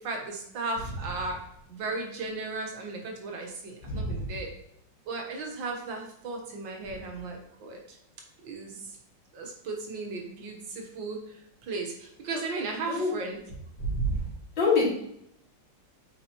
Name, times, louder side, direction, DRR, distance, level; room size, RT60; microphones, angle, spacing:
voice 1, 0.0-1.4 1.7-4.5 5.1-8.0 8.4-9.0 9.3-13.4, right 3 dB, 85° right, 1 dB, 1.9 m, -36 dB
voice 2, 3.8-4.2 12.9-13.1 13.8-14.2 14.6-14.9, left 2 dB, 85° left, -5 dB, 2.7 m, -26 dB
8.7 x 4.4 x 3.0 m, 0.75 s
omnidirectional pair, 2.0 m